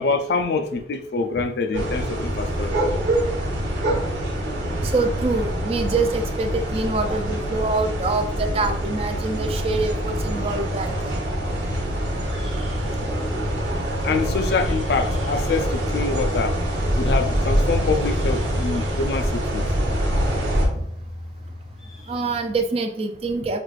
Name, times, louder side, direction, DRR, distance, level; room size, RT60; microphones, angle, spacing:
voice 1, 0.0-3.0 14.0-16.6 17.0-19.7, left 4 dB, 60° left, 0.3 m, -25 dB
sound 1, 1.7-20.7, equal, 85° right, 1.0 m, -25 dB
voice 2, 4.8-10.9 22.1-23.6, right 3 dB, 35° right, 0.3 m, -25 dB
sound 2, 11.4-22.4, left 1 dB, ahead, 0.7 m, -36 dB
4.6 x 2.4 x 2.4 m
head